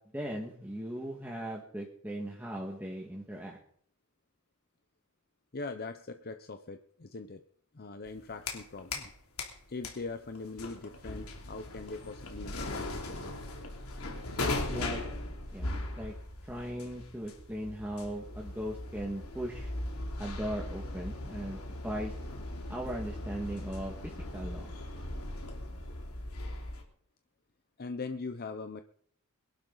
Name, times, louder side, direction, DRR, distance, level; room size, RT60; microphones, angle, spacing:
voice 1, 0.1-3.6 14.5-15.0 15.5-16.1 16.4-19.7 20.2-22.2 22.7-24.7, equal, 10° right, -2 dB, 1.9 m, -38 dB
voice 2, 5.5-7.4 7.7-9.1 9.7-13.4 24.6-24.7 27.8-28.8, left 3 dB, 45° left, 8 dB, 0.8 m, -41 dB
sound 1, 8.1-9.1 9.4-26.8, left 2 dB, 85° left, 3.1 m, -39 dB
22.5 x 12.0 x 4.0 m, 0.64 s
head